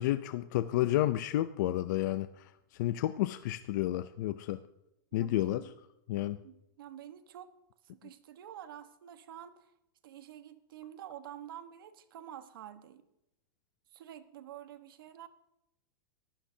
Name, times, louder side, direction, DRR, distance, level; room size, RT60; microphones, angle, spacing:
voice 1, 0.0-2.5 2.8-4.6 5.1-5.6 6.1-6.4, left 14 dB, 55° left, 12 dB, 0.5 m, -31 dB
voice 2, 5.1-5.8 6.4-7.5 7.8-9.7 10.0-13.1 13.9-15.3, right 11 dB, 80° right, 10 dB, 1.2 m, -48 dB
23.5 x 14.5 x 2.8 m, 0.84 s
supercardioid pair, 160°, 12 cm